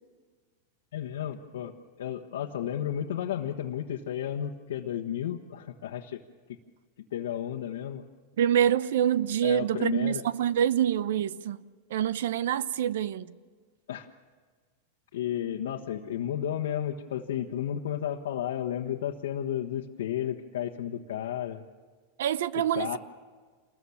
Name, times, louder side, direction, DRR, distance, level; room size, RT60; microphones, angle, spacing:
voice 1, 0.9-1.7 2.0-6.2 7.1-8.0 9.4-10.2 13.9-14.1 15.1-21.6 22.5-23.0, left 10 dB, 90° left, 1.3 m, -33 dB
voice 2, 8.4-11.6 11.9-13.3 22.2-23.0, right 10 dB, 80° right, 0.8 m, -26 dB
27.5 x 21.0 x 7.2 m
supercardioid pair, 150°, 0 cm